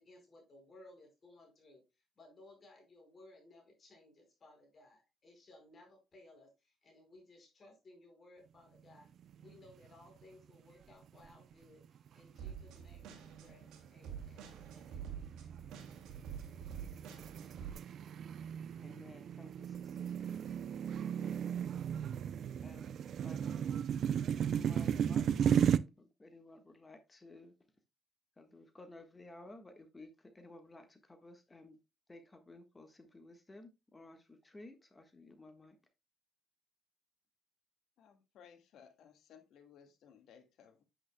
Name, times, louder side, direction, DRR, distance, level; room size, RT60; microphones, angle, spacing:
voice 1, 0.0-9.1 9.4-15.3, left 2 dB, 40° left, 4.7 m, -60 dB
sound 1, 9.3-9.9 10.2-10.3 11.0-11.5 12.1-12.3 12.9-25.8, right 8 dB, 60° right, 0.5 m, -35 dB
sound 2, 12.4-17.7, right 8 dB, 85° right, 2.2 m, -47 dB
voice 2, 18.7-20.6 20.8-21.6 22.6-23.9 24.2-27.5 28.4-31.8 32.1-35.8, left 2 dB, 20° left, 1.4 m, -56 dB
voice 3, 38.0-40.8, left 7 dB, 75° left, 1.7 m, -60 dB
8.7 x 8.7 x 2.2 m
cardioid pair, 100°, 0 cm